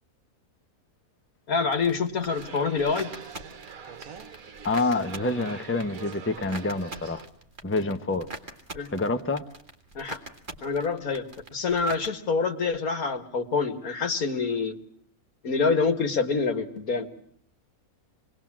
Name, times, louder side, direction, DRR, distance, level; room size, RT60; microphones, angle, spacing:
voice 1, 1.5-3.1 8.8-8.9 9.9-10.2 10.6-11.3 11.5-14.8 15.4-17.1, left 4 dB, 75° left, 2.2 m, -26 dB
sound 1, 1.7-12.1, right 2 dB, 35° right, 2.4 m, -44 dB
sound 2, 2.3-7.3, right 6 dB, 75° right, 1.7 m, -44 dB
voice 2, 4.6-7.2 7.6-8.3 8.9-9.4, left 2 dB, 10° left, 0.9 m, -27 dB
27.0 x 20.5 x 7.5 m
omnidirectional pair, 1.5 m